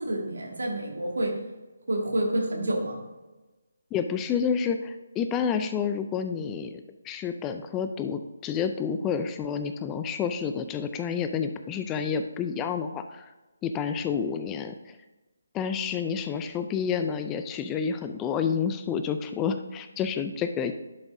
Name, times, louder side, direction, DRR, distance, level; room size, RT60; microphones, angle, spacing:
voice 1, 0.1-1.3 1.9-3.0, right 1 dB, 85° right, 1 dB, 2.1 m, -28 dB
voice 2, 3.9-13.3 13.6-15.0 15.5-20.8, left 7 dB, 10° left, 8 dB, 0.3 m, -29 dB
10.5 x 6.0 x 2.7 m, 1.1 s
hypercardioid pair, 165°, 0 cm